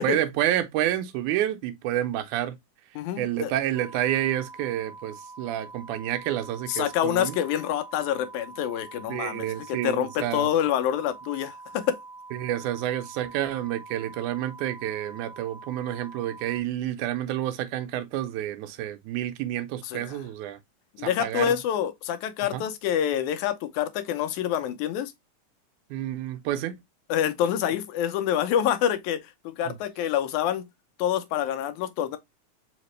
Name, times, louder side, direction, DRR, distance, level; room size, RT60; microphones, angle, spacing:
voice 1, 0.0-2.6 3.2-7.4 9.1-10.5 12.3-20.6 21.0-21.5 22.5-22.6 25.9-26.7 29.7-29.8, right 12 dB, 80° right, 2.0 m, -29 dB
voice 2, 3.0-3.5 6.7-12.0 19.8-20.2 21.0-25.1 27.1-30.7 31.0-32.2, left 10 dB, 80° left, 2.0 m, -27 dB
sound 1, 3.7-16.6, right 3 dB, 60° right, 0.5 m, -45 dB
5.0 x 2.9 x 3.1 m
omnidirectional pair, 3.6 m